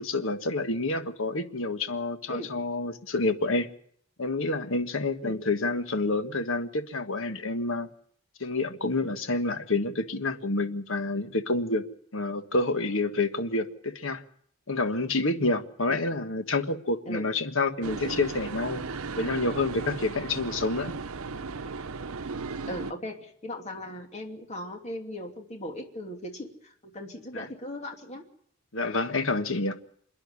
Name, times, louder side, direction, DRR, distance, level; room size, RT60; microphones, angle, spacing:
voice 1, 0.0-3.7 4.2-7.9 8.4-11.8 12.1-14.2 14.7-18.8 19.2-20.9 27.3-27.4 28.7-29.8, left 2 dB, 70° left, 1.5 m, -28 dB
sound 1, 17.8-22.9, right 4 dB, 85° right, 0.8 m, -36 dB
voice 2, 22.7-28.2, left 1 dB, 30° left, 2.8 m, -38 dB
27.0 x 10.5 x 9.7 m
head